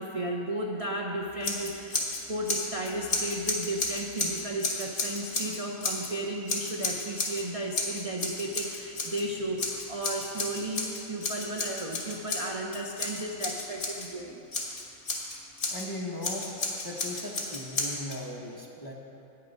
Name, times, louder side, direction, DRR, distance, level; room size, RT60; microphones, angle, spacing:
voice 1, 0.0-14.4, right 1 dB, 40° right, 0 dB, 0.5 m, -34 dB
Scissors, 1.4-2.2 2.5-6.1 6.5-7.4 7.7-9.2 9.6-14.1 14.5-15.9 16.2-18.2, left 3 dB, 45° left, 1.5 m, -32 dB
voice 2, 15.7-16.5 16.8-18.9, left 1 dB, 20° left, -2 dB, 0.7 m, -38 dB
9.6 x 9.0 x 5.3 m, 2.8 s
omnidirectional pair, 1.5 m